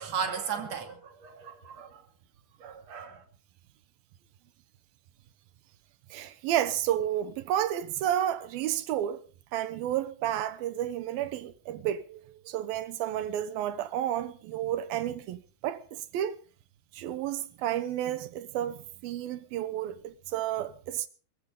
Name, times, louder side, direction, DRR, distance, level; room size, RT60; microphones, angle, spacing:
voice 1, 0.0-2.0 2.6-3.2, right 6 dB, 50° right, 3.4 m, -36 dB
voice 2, 6.1-9.2 9.5-16.4 16.9-21.1, right 11 dB, 75° right, 2.8 m, -31 dB
22.0 x 15.0 x 3.9 m
omnidirectional pair, 4.3 m